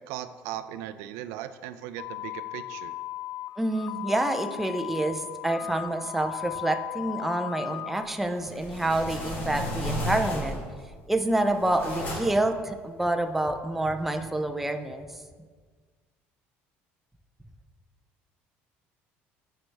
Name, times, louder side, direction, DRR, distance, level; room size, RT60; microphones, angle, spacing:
voice 1, 0.0-3.0, right 11 dB, 80° right, 12 dB, 0.4 m, -38 dB
sound 1, 2.0-8.1, left 17 dB, 70° left, 0.3 m, -37 dB
voice 2, 3.6-10.6 11.1-15.1, right 1 dB, 5° right, 6 dB, 0.4 m, -27 dB
sound 2, 8.3-10.8 11.3-12.5, equal, 40° left, 1.8 m, -33 dB
10.0 x 4.5 x 3.3 m, 1.5 s
cardioid pair, 160°, 5 cm